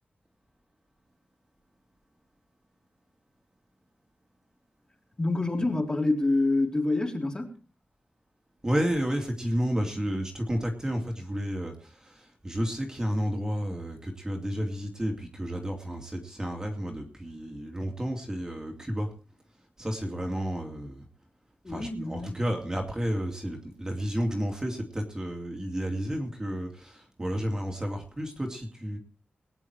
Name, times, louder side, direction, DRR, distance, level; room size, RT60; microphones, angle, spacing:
voice 1, 5.2-7.5 21.6-22.4, left 2 dB, 25° left, 1 dB, 3.7 m, -27 dB
voice 2, 8.6-19.1 19.8-21.1 21.7-29.0, equal, 20° right, 3 dB, 2.5 m, -31 dB
20.0 x 10.0 x 4.7 m, 0.37 s
wide cardioid pair, 155°, 4 cm